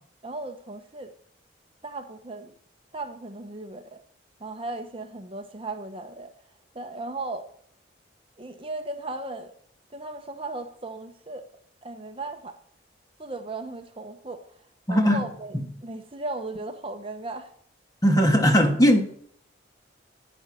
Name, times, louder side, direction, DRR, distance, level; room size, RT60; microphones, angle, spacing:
voice 1, 0.2-1.1 1.8-2.5 2.9-4.0 4.4-6.3 6.7-7.5 8.4-9.5 9.9-11.5 11.8-12.6 13.2-14.6 14.9-15.6 15.8-17.5, right 2 dB, 30° right, 0.9 m, -36 dB
voice 2, 14.9-15.2 18.0-19.0, equal, 20° left, 1.6 m, -19 dB
11.0 x 9.6 x 8.3 m
head